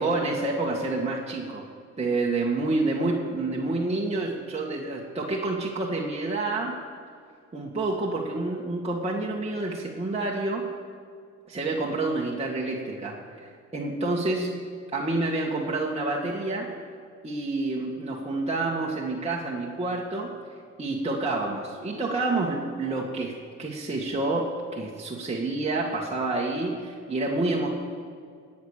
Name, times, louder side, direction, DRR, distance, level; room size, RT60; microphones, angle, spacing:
voice 1, 0.0-1.6 2.0-6.7 7.5-10.7 11.5-14.5 14.9-16.7 17.2-20.3 20.8-23.3 23.6-27.7, right 2 dB, 20° right, -4 dB, 2.0 m, -28 dB
19.5 x 8.7 x 6.7 m, 2.2 s
cardioid pair, 90°, 30 cm